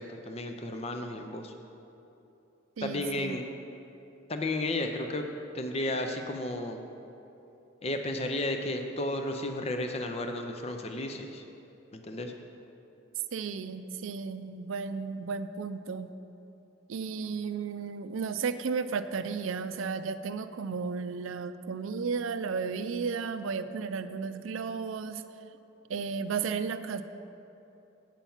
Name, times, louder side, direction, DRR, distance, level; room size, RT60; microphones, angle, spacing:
voice 1, 0.0-1.5 2.8-3.5 4.3-5.3 5.5-6.8 7.8-11.4 11.9-12.3, left 1 dB, 30° left, 5 dB, 0.5 m, -33 dB
voice 2, 2.8-3.4 13.3-16.1 16.9-25.2 25.9-27.0, right 5 dB, 80° right, 11 dB, 0.4 m, -34 dB
9.1 x 5.7 x 7.1 m, 2.9 s
head